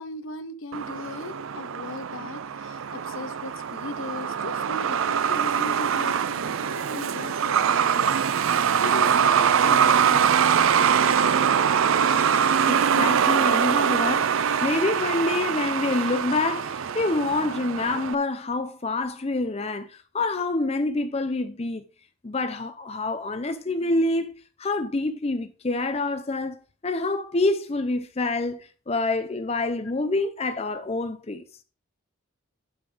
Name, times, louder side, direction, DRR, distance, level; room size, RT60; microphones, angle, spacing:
voice 1, 0.0-9.3 9.6-10.3 10.7-12.2, left 3 dB, 70° left, 0.8 m, -38 dB
Truck, 0.7-18.1, right 7 dB, 70° right, 0.4 m, -23 dB
voice 2, 12.7-21.8 22.2-31.4, left 2 dB, 30° left, 0.5 m, -27 dB
11.5 x 3.9 x 4.9 m
head